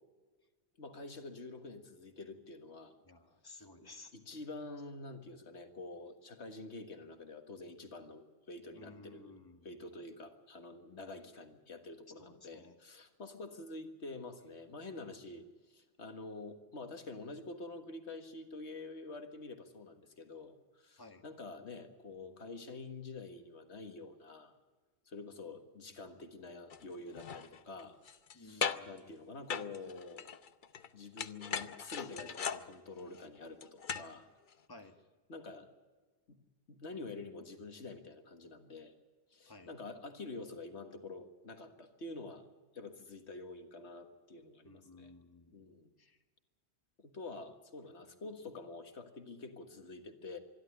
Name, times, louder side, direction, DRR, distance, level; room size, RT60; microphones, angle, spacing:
voice 1, 0.8-3.0 3.5-3.7 4.1-9.4 9.6-24.5 25.1-28.0 28.4-30.3 30.9-34.3 35.3-35.7 36.3-36.4 36.7-38.9 39.3-42.5 42.7-45.1 45.5-45.9 47.0-50.4, left 3 dB, 80° left, 7 dB, 1.9 m, -47 dB
voice 2, 3.0-4.1 8.7-9.9 12.2-12.7 21.0-21.2 28.3-29.1 34.7-35.0 39.4-39.7 44.6-45.6 46.0-46.2, left 2 dB, 20° left, 5 dB, 1.6 m, -56 dB
sound 1, 26.7-26.8 27.1-28.3 28.6-29.0 29.5-30.9 31.2-34.1 34.5-34.6, left 6 dB, 50° left, 0.9 m, -39 dB
25.5 x 11.5 x 9.9 m, 1.3 s
omnidirectional pair, 1.1 m